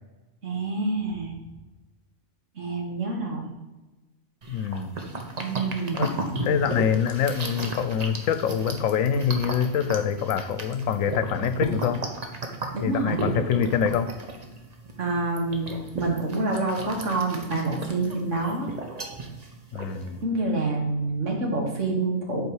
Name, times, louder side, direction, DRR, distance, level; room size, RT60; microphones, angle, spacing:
voice 1, 0.4-1.3 2.6-3.5 5.4-6.0 12.7-13.2 15.0-18.7 20.2-22.4, right 2 dB, 65° right, 1 dB, 1.9 m, -27 dB
sound 1, 4.4-20.2, right 2 dB, 35° right, 0.9 m, -34 dB
voice 2, 4.5-5.0 5.9-12.0 12.8-14.1 19.7-20.2, left 8 dB, 80° left, 10 dB, 1.0 m, -25 dB
8.1 x 4.7 x 4.7 m, 1.1 s
omnidirectional pair, 1.4 m